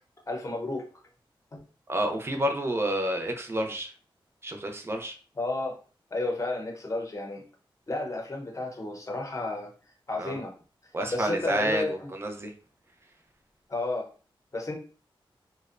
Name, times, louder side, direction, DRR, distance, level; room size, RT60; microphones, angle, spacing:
voice 1, 0.3-0.9 1.5-1.6 5.4-5.8 6.1-7.4 7.9-9.7 10.1-10.5 11.1-11.9 13.7-14.1 14.5-14.7, left 2 dB, 35° left, 1 dB, 0.7 m, -31 dB
voice 2, 1.9-3.9 4.4-5.2 10.2-10.4 10.9-12.5, right 1 dB, 25° right, 4 dB, 0.5 m, -29 dB
2.5 x 2.1 x 2.4 m, 0.38 s
wide cardioid pair, 100°, 9 cm